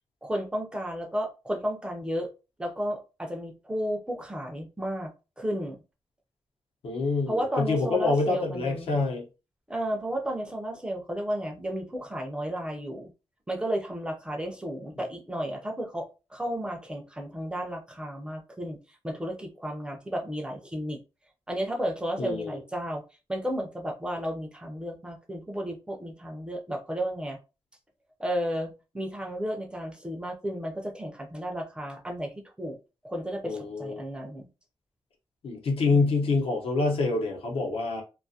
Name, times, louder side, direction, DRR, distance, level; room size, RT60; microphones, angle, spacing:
voice 1, 0.2-2.3 2.6-5.1 5.4-5.8 7.3-9.0 9.7-13.1 13.5-18.8 19.0-21.0 21.5-23.0 23.3-27.4 28.2-32.3 32.6-32.8 33.0-34.5 35.9-36.4, equal, 10° right, 0.4 m, -33 dB
voice 2, 6.8-9.2 22.2-22.6 33.4-34.0 35.4-38.0, left 3 dB, 85° left, 0.8 m, -26 dB
2.4 x 2.3 x 2.7 m
wide cardioid pair, 180°, 10 cm